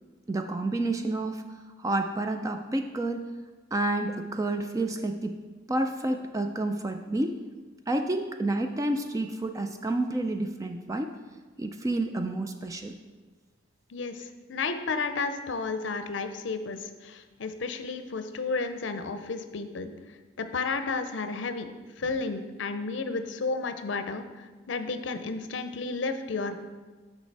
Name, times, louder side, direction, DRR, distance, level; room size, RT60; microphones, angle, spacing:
voice 1, 0.3-1.4 1.8-3.3 3.7-5.4 5.7-7.4 7.9-11.1 11.6-12.9, right 2 dB, 15° right, 6 dB, 0.3 m, -29 dB
voice 2, 13.9-19.9 20.4-21.7 22.0-24.2 24.7-26.6, left 4 dB, 75° left, 9 dB, 0.6 m, -32 dB
6.6 x 5.5 x 4.6 m, 1.4 s
head